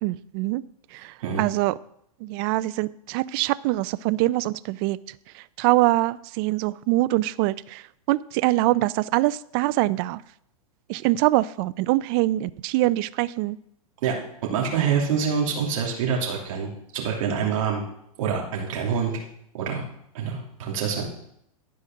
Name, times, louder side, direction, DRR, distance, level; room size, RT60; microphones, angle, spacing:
voice 1, 0.0-0.6 0.9-1.7 2.2-5.0 5.3-10.2 10.9-13.6, right 18 dB, 40° right, 18 dB, 0.4 m, -24 dB
voice 2, 14.5-17.8 18.2-19.1 19.5-19.8 20.1-21.1, right 6 dB, 60° right, -1 dB, 2.8 m, -26 dB
11.5 x 4.9 x 6.5 m, 0.72 s
hypercardioid pair, 125°, 18 cm